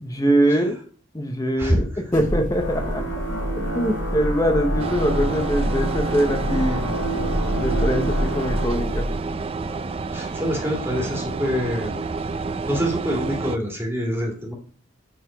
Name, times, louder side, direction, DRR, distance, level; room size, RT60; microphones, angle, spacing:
voice 1, 0.0-0.8 1.1-1.9 2.1-3.0 3.6-7.0 7.5-9.1, right 1 dB, 20° left, 6 dB, 0.8 m, -23 dB
voice 2, 1.6-2.2 10.1-12.0 12.6-14.5, equal, 10° right, -1 dB, 1.9 m, -26 dB
sound 1, 2.1-9.2, equal, 45° left, 2.9 m, -27 dB
sound 2, 2.5-8.6, right 1 dB, 60° left, 3.6 m, -30 dB
sound 3, 4.8-13.6, right 4 dB, 30° right, 0.4 m, -29 dB
8.4 x 4.0 x 4.9 m, 0.43 s
head